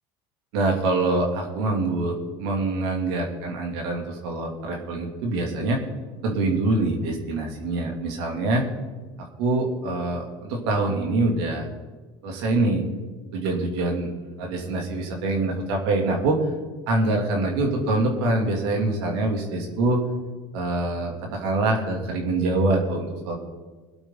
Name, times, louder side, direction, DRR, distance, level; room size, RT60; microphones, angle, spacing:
voice 1, 0.5-5.8 6.2-8.7 9.4-11.7 12.2-12.8 13.3-14.1 14.4-16.4 16.9-20.0 20.5-23.4, right 2 dB, 85° right, 1 dB, 3.0 m, -25 dB
22.5 x 8.5 x 4.0 m, 1.3 s
supercardioid pair, 115°, 13 cm